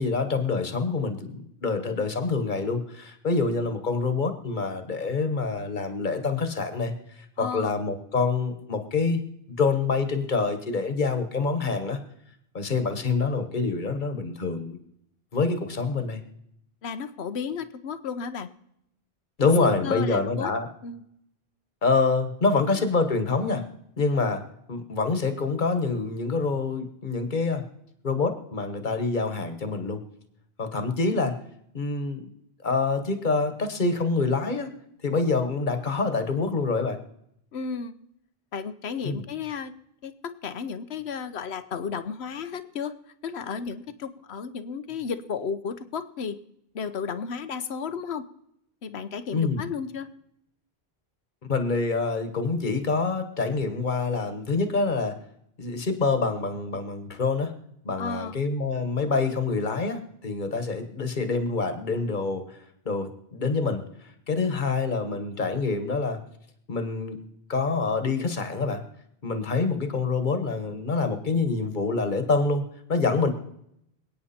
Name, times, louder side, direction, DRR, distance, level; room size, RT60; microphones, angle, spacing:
voice 1, 0.0-6.9 7.4-9.2 9.5-12.0 12.5-14.8 15.3-16.2 19.4-20.7 21.8-23.7 24.0-24.4 24.7-27.6 28.0-30.0 30.6-31.4 31.7-32.3 32.6-34.7 35.0-37.0 39.0-39.2 49.3-49.7 51.5-55.2 55.6-57.5 57.8-62.6 62.8-66.2 66.7-67.2 67.5-68.8 69.2-73.3, left 4 dB, 50° left, 8 dB, 1.5 m, -26 dB
voice 2, 7.4-7.7 16.8-18.5 19.6-20.5 20.8-21.0 37.5-37.9 38.5-39.7 40.0-42.9 43.2-46.4 46.7-48.2 48.8-50.1 58.0-58.3, left 6 dB, 85° left, 12 dB, 1.1 m, -33 dB
26.0 x 9.1 x 4.3 m, 0.77 s
omnidirectional pair, 1.1 m